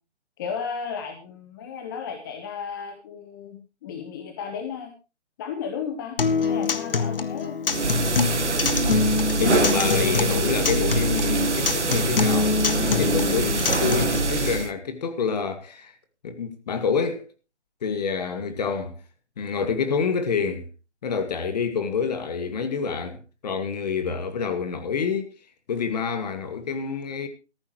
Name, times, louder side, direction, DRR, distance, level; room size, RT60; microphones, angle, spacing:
voice 1, 0.4-4.9 5.4-6.2 6.5-7.6, left 6 dB, 20° left, 1.2 m, -34 dB
Acoustic guitar, 6.2-14.2, left 5 dB, 55° left, 1.7 m, -25 dB
sound 1, 7.7-14.7, right 3 dB, 85° right, 1.5 m, -24 dB
voice 2, 9.1-15.9 16.2-17.3 17.8-19.0 19.4-20.7 21.0-25.3 25.7-27.3, left 6 dB, 35° left, 2.1 m, -27 dB
17.0 x 14.5 x 3.0 m
figure-of-eight pair, 150°, 34 cm